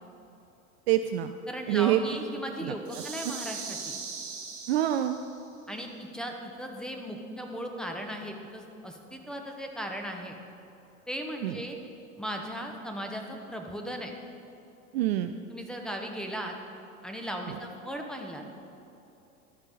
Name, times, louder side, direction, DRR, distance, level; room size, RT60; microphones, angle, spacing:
voice 1, 0.9-1.3 1.7-2.0 2.6-2.7 4.7-5.2 11.4-11.6 14.9-15.3, right 13 dB, 45° right, 8 dB, 0.4 m, -26 dB
voice 2, 1.5-4.0 5.7-10.4 11.1-11.8 12.2-14.1 15.5-16.5 17.0-18.5, equal, ahead, 2 dB, 0.9 m, -37 dB
sound 1, 2.8-5.4, right 5 dB, 30° right, 2.3 m, -39 dB
12.0 x 8.8 x 4.1 m, 2.9 s
figure-of-eight pair, 90°, 44 cm